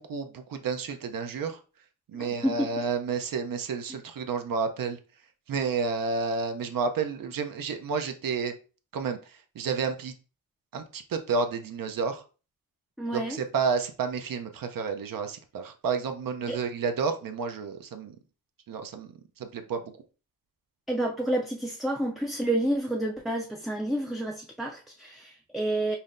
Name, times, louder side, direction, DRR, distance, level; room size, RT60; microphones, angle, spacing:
voice 1, 0.0-1.6 2.1-5.0 5.5-8.5 8.9-9.2 9.6-10.1 10.7-12.2 13.1-18.2 18.7-19.1 19.4-19.8, right 5 dB, 70° right, 0.6 m, -30 dB
voice 2, 2.1-2.7 13.0-13.4 16.5-16.6 20.9-26.0, right 1 dB, ahead, 0.3 m, -29 dB
5.5 x 2.1 x 2.5 m
wide cardioid pair, 110°, 35 cm